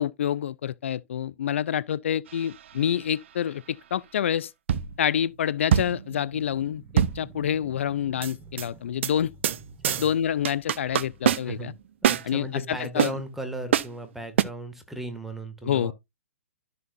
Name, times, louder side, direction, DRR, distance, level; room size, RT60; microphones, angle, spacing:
voice 1, 0.0-4.5 5.0-9.3 10.0-11.7 12.2-13.1 15.6-15.9, left 9 dB, 65° left, 0.4 m, -27 dB
sound 1, 2.3-2.8 4.7-5.2 5.7-7.7 8.2-8.7 9.0-9.1 9.4-9.6 9.8-10.1 10.4-11.7 12.0-12.3 13.0-13.1 13.7-13.9 14.4-14.5, right 10 dB, 60° right, 0.7 m, -24 dB
sound 2, 6.3-12.3, right 2 dB, 20° right, 1.9 m, -51 dB
voice 2, 12.0-15.9, right 1 dB, 5° right, 1.8 m, -36 dB
12.5 x 6.7 x 2.5 m
hypercardioid pair, 120°, 7 cm